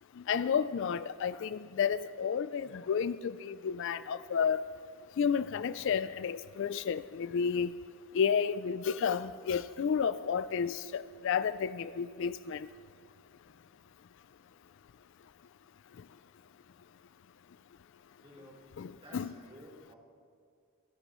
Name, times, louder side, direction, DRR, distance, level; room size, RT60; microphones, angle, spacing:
voice 1, 0.3-4.6 5.2-7.7 8.1-12.7 18.8-19.3, left 7 dB, 55° left, 15 dB, 0.3 m, -31 dB
voice 2, 18.2-18.6 19.0-20.0, equal, 25° right, -2 dB, 3.7 m, -53 dB
27.5 x 13.5 x 3.1 m, 2.3 s
head